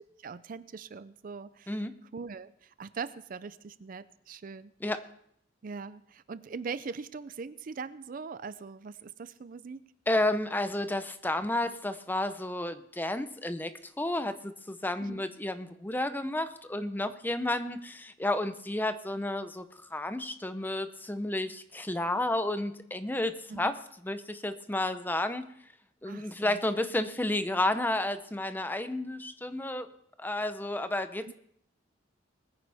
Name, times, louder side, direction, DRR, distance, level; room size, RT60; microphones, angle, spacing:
voice 1, 0.2-1.8 2.1-4.7 5.6-9.8 15.0-15.2 23.5-23.8 26.0-26.6 31.3-31.4, right 5 dB, 50° right, 15 dB, 0.4 m, -41 dB
voice 2, 10.1-13.7 14.0-19.6 19.9-23.8 24.0-25.4 26.0-29.9 30.2-31.3, left 1 dB, 10° left, 10 dB, 0.7 m, -31 dB
20.5 x 9.7 x 3.5 m, 0.68 s
head